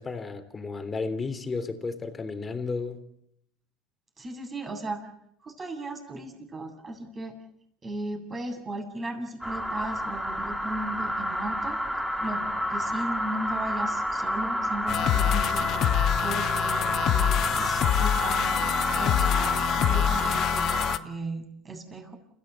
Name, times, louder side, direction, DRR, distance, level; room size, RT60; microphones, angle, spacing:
voice 1, 0.0-3.0, left 4 dB, 25° left, 10 dB, 3.3 m, -33 dB
voice 2, 4.2-5.1 5.4-7.4 7.8-11.8 12.2-15.7 16.2-22.2, right 2 dB, 25° right, 3 dB, 7.7 m, -36 dB
sound 1, 9.4-21.0, equal, ahead, 4.1 m, -29 dB
sound 2, 14.9-21.0, left 11 dB, 50° left, 1.0 m, -26 dB
30.0 x 15.5 x 8.4 m, 0.73 s
hypercardioid pair, 90°, 0 cm